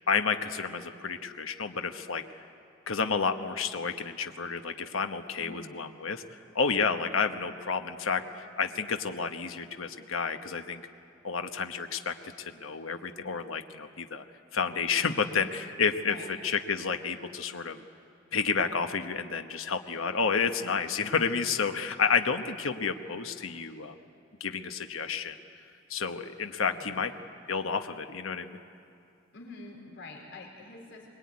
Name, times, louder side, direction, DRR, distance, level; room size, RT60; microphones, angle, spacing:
voice 1, 0.0-2.2 2.9-6.2 6.5-10.8 11.2-14.2 14.5-17.8 18.3-23.9 24.4-25.3 25.9-27.1 27.5-28.6, left 5 dB, 80° left, 7 dB, 1.1 m, -30 dB
voice 2, 5.4-5.7 16.0-16.3 26.7-27.0 29.3-31.1, left 2 dB, 60° left, 1 dB, 4.3 m, -46 dB
23.0 x 22.0 x 9.7 m, 2.5 s
head